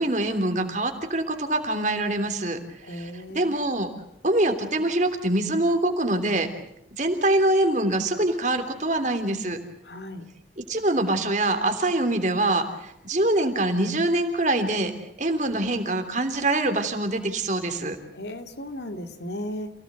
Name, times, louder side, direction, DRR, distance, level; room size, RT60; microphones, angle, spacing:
voice 1, 0.0-2.6 2.9-3.9 4.2-6.5 7.0-9.6 10.7-14.9 15.2-18.0, right 1 dB, 40° right, 6 dB, 3.2 m, -24 dB
voice 2, 2.8-3.6 9.8-10.2 18.1-19.7, equal, 70° left, 7 dB, 2.4 m, -35 dB
29.0 x 17.5 x 8.1 m, 0.77 s
head